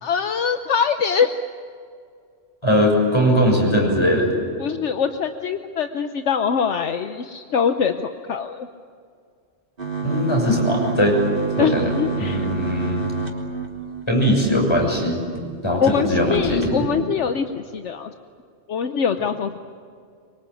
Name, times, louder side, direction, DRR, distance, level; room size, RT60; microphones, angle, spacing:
voice 1, 0.0-1.3 4.6-8.7 11.6-12.5 15.8-18.1 18.7-19.6, left 6 dB, 70° left, 7 dB, 1.2 m, -23 dB
voice 2, 2.6-4.3 10.0-11.2 11.6-11.9 12.2-13.1 14.1-15.2 15.6-16.9, equal, 20° left, 0 dB, 6.7 m, -20 dB
sound 1, 9.8-14.8 15.4-15.5 15.7-15.9 16.3-16.7, right 4 dB, 45° right, 3.5 m, -28 dB
25.0 x 24.5 x 9.0 m, 2.2 s
omnidirectional pair, 1.3 m